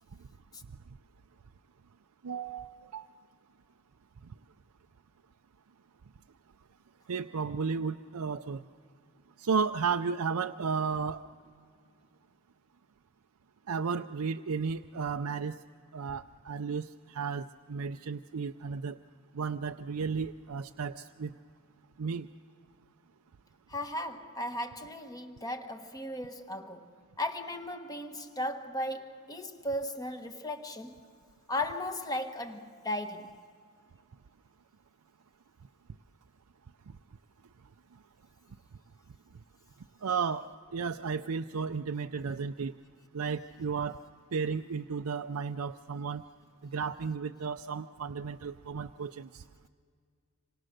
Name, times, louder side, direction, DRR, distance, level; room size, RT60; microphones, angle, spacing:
voice 1, 2.2-3.1 7.1-8.6 9.4-11.2 13.7-15.6 15.9-19.0 19.3-21.3 22.0-22.3 40.0-40.5 40.7-42.7 43.1-44.0 44.3-46.2 46.6-49.4, right 5 dB, 90° right, 0.5 m, -33 dB
voice 2, 23.7-31.0 31.5-33.4, left 1 dB, 15° left, 1.2 m, -36 dB
26.5 x 26.0 x 6.6 m
head